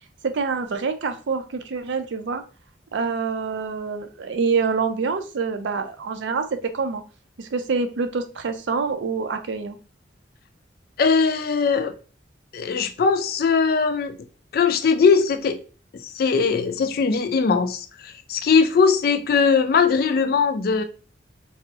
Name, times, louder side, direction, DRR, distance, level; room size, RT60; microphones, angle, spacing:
voice 1, 0.2-2.4 2.9-7.0 7.4-9.8, right 5 dB, 70° right, 0.4 m, -26 dB
voice 2, 11.0-11.9 12.5-14.1 14.5-15.6 15.9-20.8, left 5 dB, 50° left, 0.3 m, -20 dB
3.5 x 2.0 x 2.8 m
head